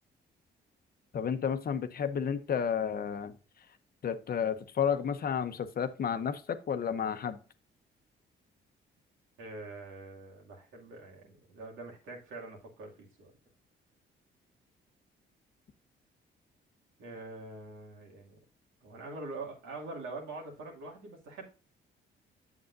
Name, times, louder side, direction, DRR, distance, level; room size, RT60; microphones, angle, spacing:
voice 1, 1.1-3.3 4.0-7.4, left 7 dB, 50° left, 10 dB, 0.8 m, -31 dB
voice 2, 9.4-13.3 17.0-18.4 18.8-21.5, right 2 dB, 90° right, -1 dB, 2.4 m, -44 dB
7.8 x 7.2 x 2.6 m, 0.36 s
cardioid pair, 90°, 20 cm